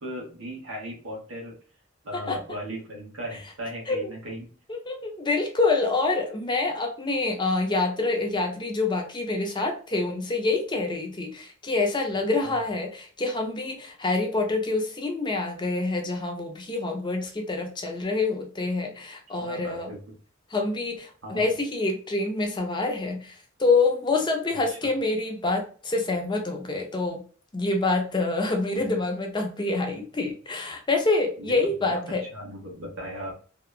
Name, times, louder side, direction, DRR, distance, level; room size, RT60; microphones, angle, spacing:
voice 1, 0.0-1.6 2.0-4.5 12.4-12.6 19.4-20.1 21.2-21.4 24.7-24.8 31.4-31.6 31.8-33.3, equal, 90° right, -1 dB, 1.1 m, -37 dB
voice 2, 4.7-19.9 20.5-27.2 27.5-32.2, left 3 dB, 25° left, 3 dB, 0.5 m, -26 dB
2.8 x 2.2 x 2.3 m, 0.40 s
head